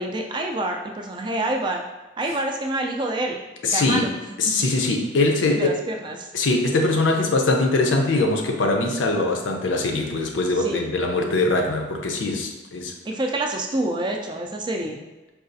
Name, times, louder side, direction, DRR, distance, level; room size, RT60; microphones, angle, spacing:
voice 1, 0.0-1.9 2.2-3.4 3.7-4.1 4.5-4.7 5.5-6.3 10.6-10.8 13.1-15.0, right 1 dB, 25° right, 2 dB, 0.3 m, -27 dB
voice 2, 3.6-4.1 4.4-5.8 6.3-12.9, left 2 dB, 80° left, 2 dB, 0.5 m, -22 dB
4.7 x 2.4 x 2.6 m, 1.1 s
head